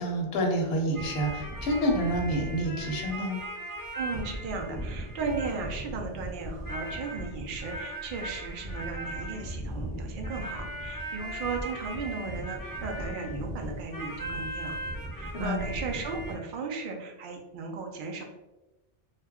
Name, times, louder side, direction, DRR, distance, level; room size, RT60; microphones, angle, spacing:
voice 1, 0.0-3.4 15.3-15.6, equal, 65° left, 1 dB, 0.8 m, -28 dB
sound 1, 0.9-16.3, right 1 dB, 25° left, 0.5 m, -37 dB
voice 2, 4.0-14.8 15.1-18.2, right 4 dB, 60° right, 2 dB, 0.6 m, -36 dB
2.3 x 2.1 x 3.4 m, 1.0 s
omnidirectional pair, 1.1 m